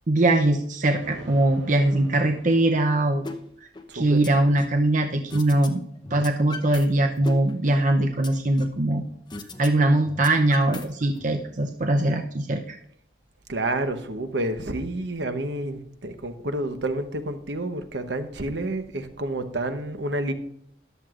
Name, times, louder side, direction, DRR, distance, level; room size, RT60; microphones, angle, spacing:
voice 1, 0.1-3.3 3.6-3.7 3.9-5.8 6.1-9.0 9.6-12.8, right 1 dB, 40° right, 4 dB, 0.7 m, -21 dB
Thunder, 1.0-3.5, right 2 dB, 90° right, 1.6 m, -45 dB
sound 1, 3.2-3.4 3.7-4.8 5.3-5.7 6.0-6.8 7.2-8.8 9.3-9.7 10.0-11.2, left 3 dB, 25° left, 0.8 m, -38 dB
voice 2, 3.9-4.2 13.5-20.3, right 1 dB, 65° right, 8 dB, 1.0 m, -29 dB
13.5 x 11.0 x 2.5 m, 0.69 s
head